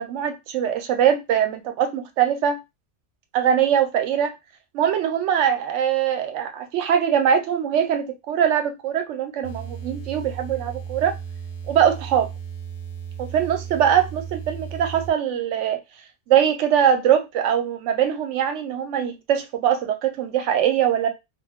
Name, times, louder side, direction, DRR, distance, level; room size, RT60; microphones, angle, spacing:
voice 1, 0.0-2.6 3.3-4.3 4.7-11.2 11.7-12.3 13.2-15.8 16.3-21.1, right 9 dB, 80° right, 0.9 m, -22 dB
sound 1, 9.4-15.1, right 7 dB, 60° left, 0.8 m, -35 dB
2.3 x 2.2 x 3.4 m
omnidirectional pair, 1.2 m